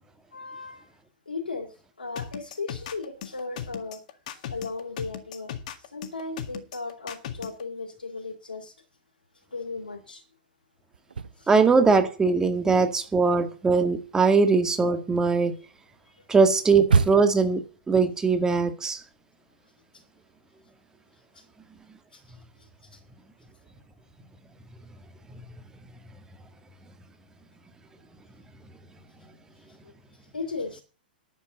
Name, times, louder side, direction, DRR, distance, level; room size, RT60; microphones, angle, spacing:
voice 1, 0.3-1.0 1.3-4.2 4.5-8.8 9.3-10.2 11.3-11.5 16.0-16.2 19.9-20.0 21.1-21.5 22.1-23.0 23.5-23.7 29.6-30.8, left 3 dB, 80° left, 2.8 m, -37 dB
sound 1, 2.2-7.6, left 9 dB, 50° left, 1.7 m, -37 dB
sound 2, 10.9-12.1 12.4-17.5, right 5 dB, 70° right, 0.7 m, -29 dB
voice 2, 11.5-15.6 16.3-17.6 17.9-19.0, right 4 dB, 10° right, 1.8 m, -21 dB
11.0 x 7.9 x 8.0 m
figure-of-eight pair, 105°, 5 cm